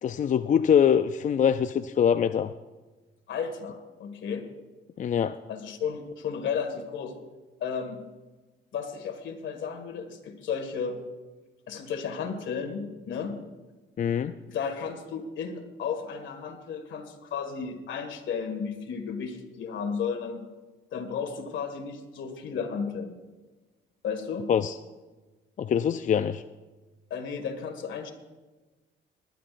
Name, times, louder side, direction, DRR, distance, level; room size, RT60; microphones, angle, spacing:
voice 1, 0.0-2.5 5.0-5.4 14.0-14.4 24.5-24.8 25.6-26.4, left 8 dB, 40° left, 10 dB, 0.4 m, -23 dB
voice 2, 3.3-4.4 5.5-7.1 7.6-8.0 8.7-11.0 11.7-13.3 14.5-20.4 20.9-23.1 24.0-24.5 27.1-28.1, left 6 dB, 70° left, 5 dB, 2.0 m, -33 dB
20.5 x 11.0 x 2.6 m, 1.2 s
cardioid pair, 90°, 20 cm